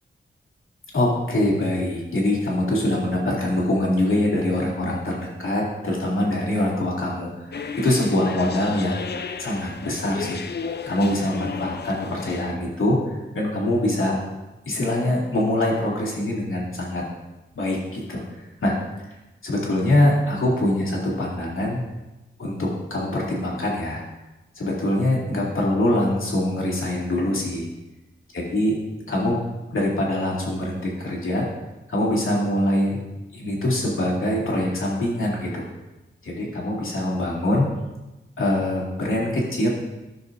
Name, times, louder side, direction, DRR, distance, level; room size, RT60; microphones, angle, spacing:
voice 1, 0.9-9.0 9.4-10.4 10.9-14.2 14.7-17.0 17.5-18.7 19.4-21.8 22.4-24.0 24.6-27.7 28.3-28.7 29.1-29.4 29.7-31.4 31.9-33.0 33.3-35.6 36.2-37.7 38.4-39.7, left 1 dB, 85° left, -4 dB, 2.4 m, -23 dB
sound 1, 7.5-12.5, left 5 dB, 55° left, 0.5 m, -34 dB
15.5 x 6.3 x 2.6 m, 1.0 s
wide cardioid pair, 100°, 20 cm